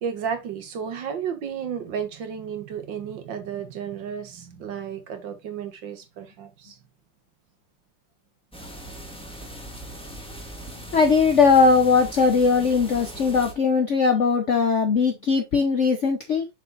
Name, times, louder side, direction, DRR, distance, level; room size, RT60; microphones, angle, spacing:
voice 1, 0.0-6.8, right 7 dB, 60° right, 1.7 m, -33 dB
sound 1, 8.5-13.5, right 1 dB, 5° left, 1.4 m, -39 dB
voice 2, 10.9-16.5, left 5 dB, 60° left, 0.8 m, -19 dB
7.1 x 6.0 x 2.5 m
omnidirectional pair, 2.4 m